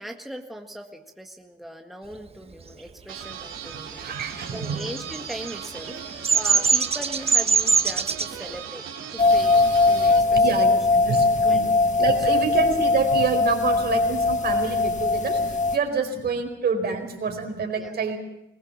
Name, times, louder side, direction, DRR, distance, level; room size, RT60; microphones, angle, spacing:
voice 1, 0.0-8.8 9.1-9.6 9.9-10.8 11.4-11.7 12.0-12.5 17.8-17.9, right 1 dB, ahead, 2 dB, 1.8 m, -39 dB
sound 1, 3.1-10.2, right 7 dB, 85° right, 3.2 m, -38 dB
voice 2, 3.9-4.9 10.3-11.7 12.0-18.2, right 5 dB, 55° right, 4 dB, 4.6 m, -27 dB
Bird vocalization bird call bird song, 4.6-8.3, right 5 dB, 30° right, 1.1 m, -22 dB
sound 2, 9.2-15.8, left 3 dB, 40° left, 1.5 m, -20 dB
21.0 x 18.5 x 7.3 m, 0.89 s
cardioid pair, 90°, 20 cm